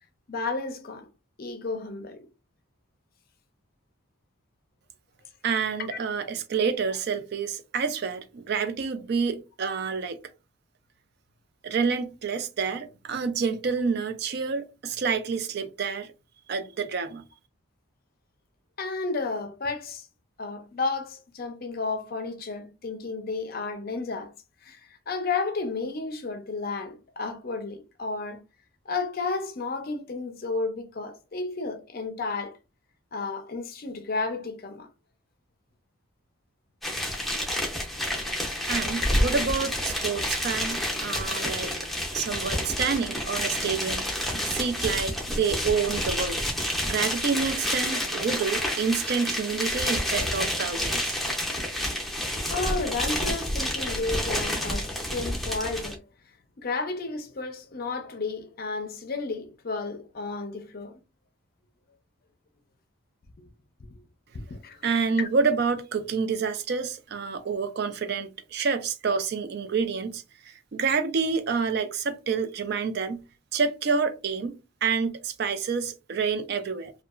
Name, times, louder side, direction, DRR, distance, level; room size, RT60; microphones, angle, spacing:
voice 1, 0.3-1.1 1.4-2.2 5.9-6.0 18.8-20.1 20.4-24.3 24.6-28.4 28.9-32.6 33.1-34.9 39.0-39.1 52.1-52.2 52.5-56.0 56.6-61.0 64.5-64.9 65.2-65.3, left 3 dB, 45° left, 0.5 m, -32 dB
voice 2, 5.4-10.2 11.6-16.1 16.5-17.2 38.7-41.7 42.1-44.1 44.4-46.4 46.9-51.2 64.8-73.2 73.5-74.6 74.8-76.9, right 5 dB, 50° right, 0.4 m, -28 dB
sound 1, 36.8-56.0, left 1 dB, ahead, 0.6 m, -29 dB
2.8 x 2.3 x 2.4 m
head